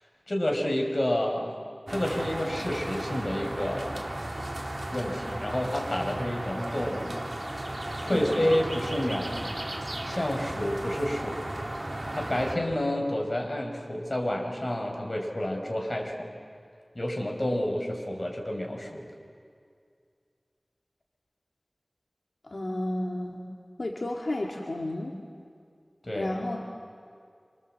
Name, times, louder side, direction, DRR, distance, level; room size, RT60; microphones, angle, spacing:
voice 1, 0.3-1.5 1.9-4.0 4.9-7.1 8.0-9.4 10.0-11.4 12.1-16.3 16.9-19.1 26.0-26.3, left 1 dB, 45° left, 1 dB, 4.9 m, -29 dB
sound 1, 1.9-12.6, right 1 dB, 45° right, 3.2 m, -35 dB
voice 2, 22.5-23.4 23.8-25.1 26.1-26.6, left 1 dB, 80° left, -1 dB, 2.1 m, -32 dB
28.0 x 25.0 x 7.7 m, 2.2 s
wide cardioid pair, 50°, 0 cm